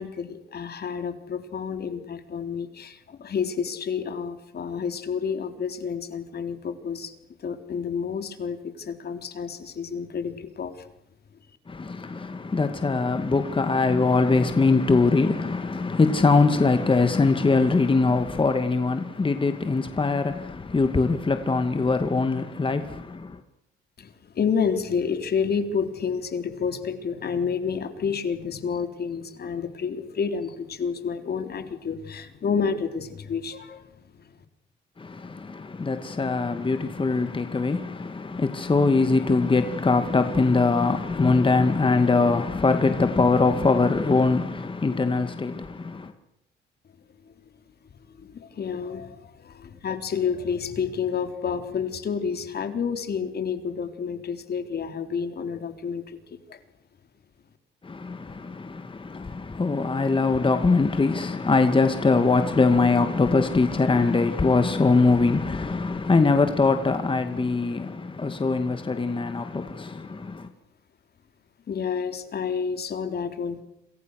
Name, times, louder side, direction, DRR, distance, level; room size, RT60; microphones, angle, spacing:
voice 1, 0.0-7.1 7.4-10.8 24.0-34.3 47.3-47.4 48.1-56.6 71.7-73.6, left 6 dB, 55° left, 3.8 m, -30 dB
voice 2, 11.7-23.4 35.0-46.1 57.8-70.5, left 3 dB, 25° left, 2.2 m, -22 dB
28.0 x 27.5 x 6.6 m
cardioid pair, 90°, 20 cm